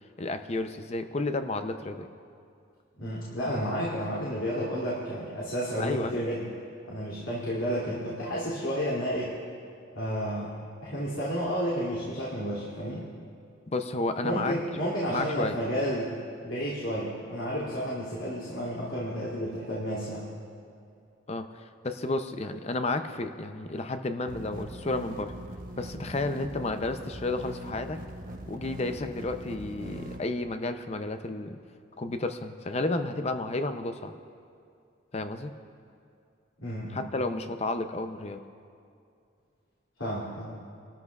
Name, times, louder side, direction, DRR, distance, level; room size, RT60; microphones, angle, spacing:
voice 1, 0.2-2.1 5.8-6.1 13.7-14.5 15.1-15.6 21.3-25.3 25.8-28.0 28.5-31.6 32.0-34.1 35.1-35.5 36.9-38.4, left 2 dB, 30° left, 8 dB, 0.5 m, -31 dB
voice 2, 3.0-6.5 6.9-9.4 9.9-10.5 10.8-13.0 14.2-16.2 16.4-20.3 36.6-37.1 40.0-40.5, equal, 90° left, -7 dB, 2.7 m, -31 dB
sound 1, 24.3-30.2, right 1 dB, 45° right, 1.1 m, -41 dB
29.0 x 13.0 x 2.4 m, 2.4 s
head